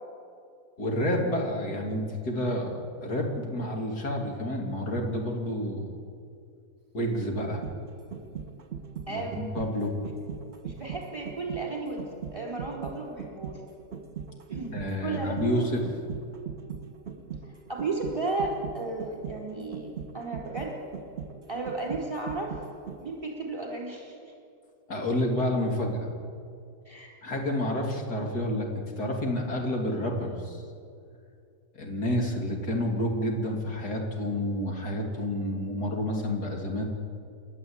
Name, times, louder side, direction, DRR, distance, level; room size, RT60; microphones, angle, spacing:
voice 1, 0.8-5.9 6.9-7.6 9.1-10.0 14.7-15.8 24.9-26.1 27.2-30.6 31.7-36.9, left 1 dB, 70° left, 1 dB, 3.5 m, -29 dB
sound 1, 7.4-23.3 23.6-23.7, right 7 dB, 40° right, 1.7 m, -40 dB
voice 2, 9.1-9.4 10.6-13.6 14.5-15.8 17.7-20.8 21.5-22.5 23.0-24.1 26.9-27.2, right 3 dB, 20° right, 0 dB, 4.3 m, -34 dB
29.5 x 12.0 x 8.8 m, 2.5 s
omnidirectional pair, 1.8 m